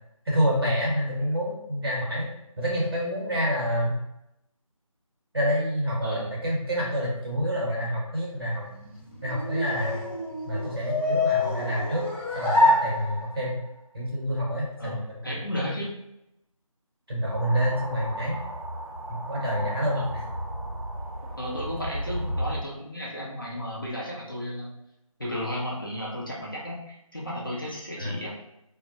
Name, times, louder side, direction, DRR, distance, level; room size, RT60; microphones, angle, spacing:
voice 1, 0.2-2.3 2.6-4.0 5.3-8.6 9.2-10.0 10.4-12.0 12.3-13.6 13.9-15.7 17.1-18.4 19.1-20.2 28.0-28.2, equal, 45° right, -4 dB, 1.0 m, -27 dB
voice 2, 6.0-6.4 14.8-15.9 19.9-20.2 21.4-24.7 25.2-28.3, equal, 40° left, -5 dB, 0.5 m, -34 dB
sound 1, 8.5-13.6, left 2 dB, 20° right, 0.5 m, -26 dB
sound 2, 17.3-22.6, right 1 dB, 85° right, 0.7 m, -34 dB
2.1 x 2.1 x 2.8 m, 0.83 s
figure-of-eight pair, 165°, 18 cm